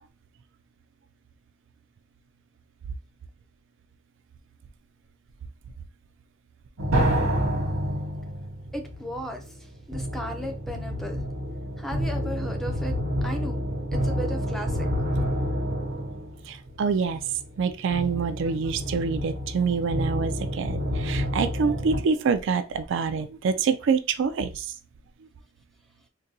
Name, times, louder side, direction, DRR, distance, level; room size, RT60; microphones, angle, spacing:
sound 1, 6.8-22.0, equal, 85° right, 0.9 m, -29 dB
voice 1, 8.7-9.4 9.9-11.2 11.8-12.9 13.2-13.6 13.9-14.9, equal, ahead, 4 dB, 0.5 m, -35 dB
voice 2, 16.5-17.2 17.6-24.7, right 5 dB, 65° right, 9 dB, 0.3 m, -26 dB
3.9 x 2.2 x 2.6 m, 0.32 s
head